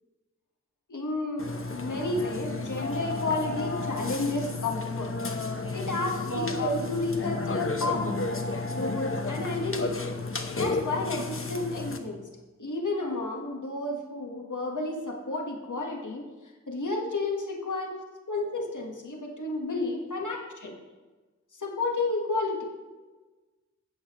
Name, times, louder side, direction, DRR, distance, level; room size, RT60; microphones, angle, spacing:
voice 1, 0.9-5.1 5.7-8.2 8.7-10.1 10.6-12.2 12.6-16.2 16.7-18.0 18.3-20.7 21.6-22.6, left 2 dB, 80° left, 1 dB, 1.4 m, -31 dB
Burping eructation, 1.4-12.0, left 3 dB, 45° left, 0.9 m, -32 dB
15.0 x 8.0 x 3.0 m, 1.3 s
wide cardioid pair, 40°, 30 cm